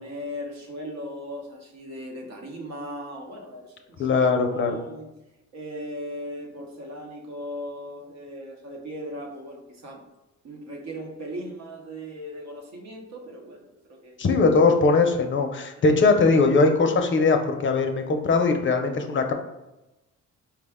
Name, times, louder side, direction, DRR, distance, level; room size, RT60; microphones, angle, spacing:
voice 1, 0.0-4.2 4.5-5.1 5.5-10.0 10.4-14.2 15.8-15.9, equal, 60° right, 2 dB, 0.9 m, -38 dB
voice 2, 4.0-4.8 14.2-19.3, left 3 dB, 40° left, 5 dB, 0.5 m, -20 dB
4.6 x 2.1 x 3.5 m, 0.98 s
cardioid pair, 90°, 30 cm